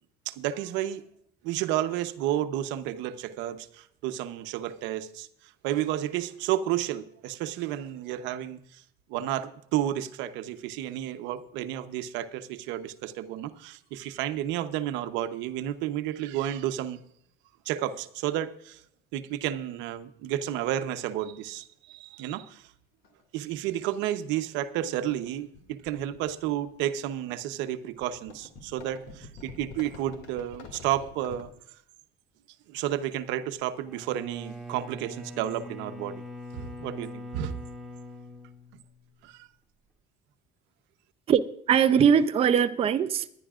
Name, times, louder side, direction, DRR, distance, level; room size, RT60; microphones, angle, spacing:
voice 1, 0.3-1.0 1.4-8.8 9.1-17.0 17.7-18.8 19.1-22.7 23.3-31.5 32.7-36.2 36.5-37.6 39.2-39.5, right 12 dB, 80° right, 0.9 m, -31 dB
sound 1, 21.5-21.6 23.0-23.2 23.5-23.7 24.4-24.6 24.8-26.9 28.0-31.5, left 4 dB, 75° left, 2.4 m, -47 dB
Bowed string instrument, 33.8-39.2, left 1 dB, ahead, 2.3 m, -42 dB
voice 2, 41.3-43.3, right 8 dB, 30° right, 0.6 m, -21 dB
20.5 x 11.0 x 2.5 m
cardioid pair, 140°, 19 cm